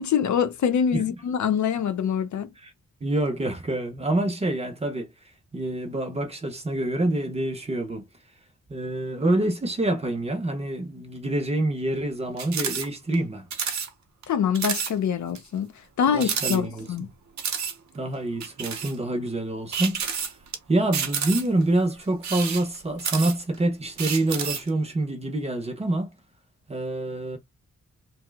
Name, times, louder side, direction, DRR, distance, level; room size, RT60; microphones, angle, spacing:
voice 1, 0.0-2.5 14.3-15.7 16.0-17.1, left 8 dB, 70° left, 0.6 m, -24 dB
voice 2, 3.0-5.1 5.5-8.1 8.7-13.5 16.1-17.1 17.9-20.0 20.7-26.1 26.7-27.4, right 1 dB, 20° right, 0.6 m, -26 dB
sound 1, 12.4-12.9 13.1-13.2 13.5-13.9 14.2-14.3 14.5-14.9 15.4-15.5 16.2-17.0 17.4-17.7 18.4-19.0 19.7-20.6 20.9-21.6 22.1-23.6 24.0-24.7, right 7 dB, 65° right, 0.7 m, -29 dB
2.8 x 2.0 x 3.3 m
wide cardioid pair, 165°, 30 cm